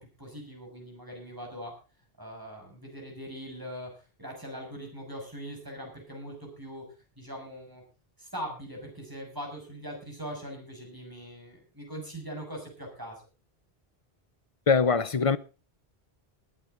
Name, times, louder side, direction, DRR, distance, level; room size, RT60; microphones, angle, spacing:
voice 1, 0.2-1.7 2.2-6.9 7.2-7.8 8.2-13.2, equal, 20° right, 6.5 m, -41 dB
voice 2, 14.7-15.4, left 5 dB, 35° left, 0.7 m, -22 dB
20.5 x 9.1 x 3.9 m
omnidirectional pair, 1.0 m